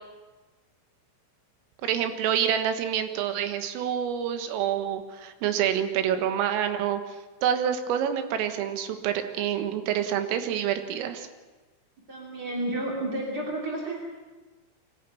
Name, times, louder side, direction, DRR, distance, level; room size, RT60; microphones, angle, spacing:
voice 1, 1.8-7.2 7.4-11.3, right 9 dB, 80° right, 8 dB, 4.0 m, -27 dB
voice 2, 12.1-14.0, right 1 dB, 30° right, -2 dB, 2.1 m, -31 dB
23.5 x 14.0 x 9.8 m, 1.2 s
omnidirectional pair, 6.0 m